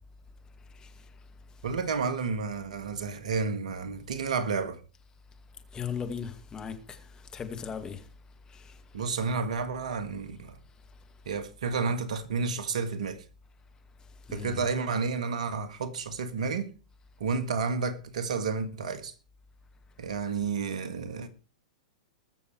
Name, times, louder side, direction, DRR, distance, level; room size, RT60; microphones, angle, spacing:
voice 1, 1.6-4.8 8.9-10.6 11.2-13.2 14.3-16.7 17.2-19.1 20.0-21.3, right 5 dB, 65° right, 1.7 m, -31 dB
voice 2, 5.7-6.7 7.3-8.0 14.3-14.7, left 7 dB, 20° left, 2.2 m, -36 dB
20.5 x 7.0 x 4.6 m
hypercardioid pair, 105°, 4 cm